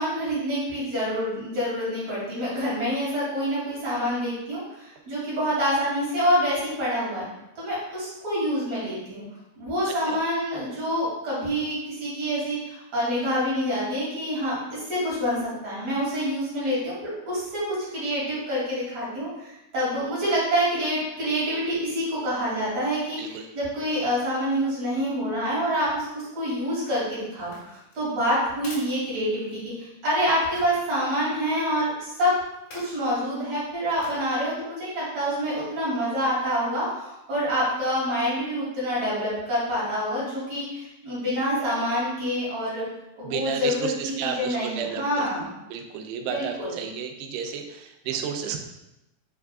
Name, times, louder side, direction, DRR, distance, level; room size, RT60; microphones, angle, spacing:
voice 1, 0.0-7.3 7.5-9.2 9.6-16.9 17.2-17.6 17.9-32.3 32.7-42.8 43.2-45.5 46.2-46.7, equal, 45° right, -8 dB, 3.3 m, -27 dB
voice 2, 9.9-10.2 23.2-23.5 43.2-45.3 45.7-48.6, right 7 dB, 90° right, 5 dB, 2.7 m, -32 dB
sound 1, 27.4-29.8 30.5-30.9 32.5-33.0 34.0-34.3 34.8-34.9, left 2 dB, 60° left, 3.9 m, -45 dB
7.3 x 5.8 x 2.4 m, 0.92 s
omnidirectional pair, 4.7 m